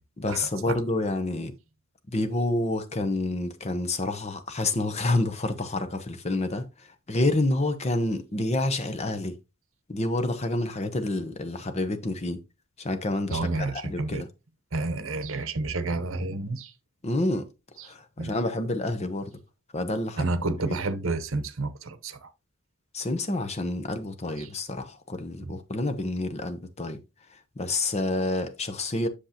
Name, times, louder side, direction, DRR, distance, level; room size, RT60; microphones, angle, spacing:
voice 1, 0.2-1.5 2.1-9.4 9.9-12.4 12.8-14.3 17.0-17.5 17.8-19.3 19.7-20.3 20.7-20.8 22.9-27.0 27.3-29.1, left 2 dB, 30° left, 0.8 m, -28 dB
voice 2, 13.3-14.2 14.7-16.7 17.8-17.9 18.2-18.4 20.2-22.3 24.4-24.5 25.4-25.6, right 2 dB, 65° right, 0.9 m, -30 dB
7.9 x 6.5 x 2.9 m
head